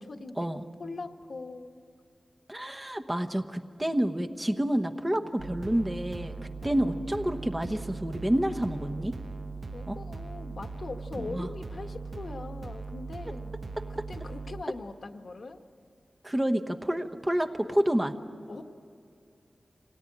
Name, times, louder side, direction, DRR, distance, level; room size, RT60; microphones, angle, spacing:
voice 1, 0.0-0.4 0.8-1.7 6.6-7.1 9.7-13.6 13.9-15.6 18.5-18.6, left 3 dB, 65° left, 6 dB, 1.2 m, -41 dB
voice 2, 2.5-6.3 6.6-9.1 9.9-10.0 11.2-11.5 16.2-18.1, right 1 dB, 20° right, 7 dB, 1.1 m, -29 dB
sound 1, 5.4-14.6, right 3 dB, 60° right, 0.8 m, -39 dB
25.5 x 18.0 x 9.9 m, 2.4 s
wide cardioid pair, 80°, 0 cm